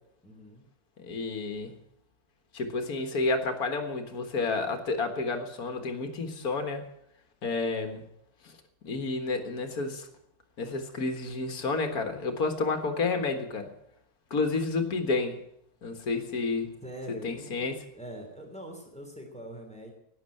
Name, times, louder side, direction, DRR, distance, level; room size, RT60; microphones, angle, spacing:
voice 1, 0.2-0.6 16.8-19.9, right 1 dB, 5° left, 3 dB, 2.9 m, -43 dB
voice 2, 1.0-1.8 2.5-6.9 7.4-8.0 8.4-8.5 8.8-10.1 10.6-13.7 14.3-15.4 15.8-16.7 17.2-17.8, left 3 dB, 75° left, 6 dB, 2.1 m, -30 dB
12.0 x 9.7 x 9.8 m, 0.76 s
omnidirectional pair, 1.6 m